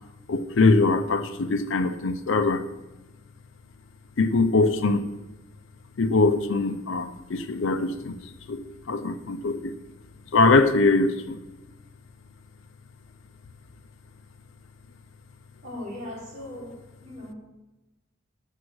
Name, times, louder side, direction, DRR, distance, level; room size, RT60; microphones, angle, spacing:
voice 1, 0.3-2.6 4.2-5.1 6.0-8.2 8.5-8.6 8.9-9.7 10.3-11.4, left 3 dB, 65° left, 11 dB, 0.6 m, -22 dB
voice 2, 15.6-16.7 17.0-17.3, left 1 dB, 35° right, -4 dB, 3.2 m, -38 dB
7.9 x 7.1 x 6.2 m, 1.1 s
head